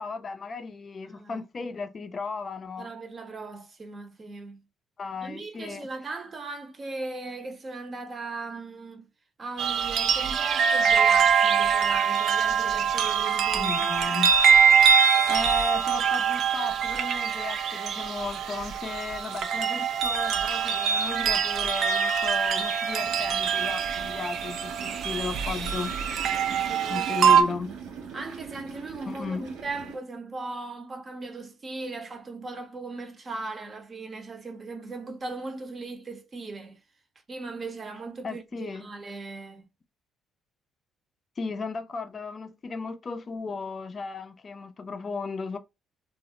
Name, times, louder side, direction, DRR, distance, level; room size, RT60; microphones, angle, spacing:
voice 1, 0.0-2.9 5.0-5.9 13.5-14.3 15.3-25.9 26.9-27.7 29.1-29.5 38.2-38.9 41.4-45.6, left 4 dB, 35° left, 0.4 m, -35 dB
voice 2, 1.0-1.4 2.8-4.6 5.2-9.1 9.4-13.9 26.7-27.1 27.6-27.8 28.1-36.8 37.3-39.7, right 3 dB, 35° right, 0.7 m, -38 dB
sound 1, 9.6-27.4, right 7 dB, 65° right, 0.3 m, -23 dB
sound 2, 23.0-30.0, right 6 dB, 85° right, 0.7 m, -42 dB
2.4 x 2.0 x 2.7 m
cardioid pair, 95°, 0 cm